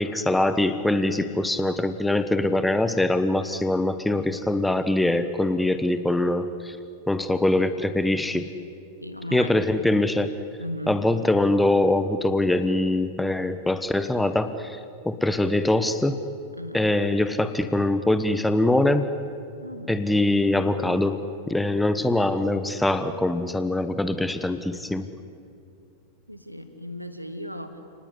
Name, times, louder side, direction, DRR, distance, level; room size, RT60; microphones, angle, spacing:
voice 1, 0.0-6.8 7.1-8.5 9.3-10.3 10.9-14.8 15.0-16.2 16.7-19.1 19.9-25.1, left 1 dB, 5° left, 11 dB, 1.2 m, -23 dB
voice 2, 9.0-9.5 10.6-11.0 13.3-13.6 16.5-16.8 19.6-20.0 20.4-20.6 26.3-27.8, equal, 90° right, 9 dB, 2.0 m, -37 dB
30.0 x 19.5 x 9.8 m, 2.5 s
figure-of-eight pair, 90°, 0 cm